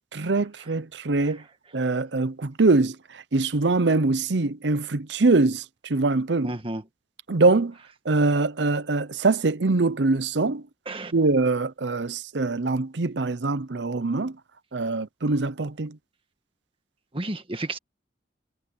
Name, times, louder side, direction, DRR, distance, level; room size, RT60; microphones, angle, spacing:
voice 1, 0.1-1.4 1.7-6.5 7.3-7.7 8.0-10.6 11.1-14.4 14.7-16.0, right 3 dB, 75° right, 0.8 m, -23 dB
voice 2, 6.4-6.8 10.9-11.1 17.1-17.8, right 2 dB, 30° right, 1.8 m, -32 dB
head